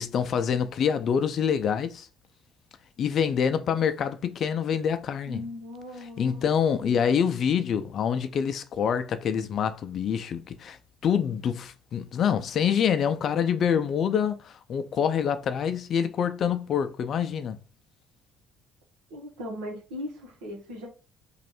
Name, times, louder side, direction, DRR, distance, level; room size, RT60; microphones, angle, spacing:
voice 1, 0.0-2.1 3.0-5.4 6.2-10.8 11.0-17.6, left 7 dB, 55° left, 0.4 m, -26 dB
voice 2, 5.2-7.0 19.1-20.9, left 1 dB, 85° right, 1.3 m, -39 dB
3.1 x 2.5 x 4.3 m
supercardioid pair, 75°, 0 cm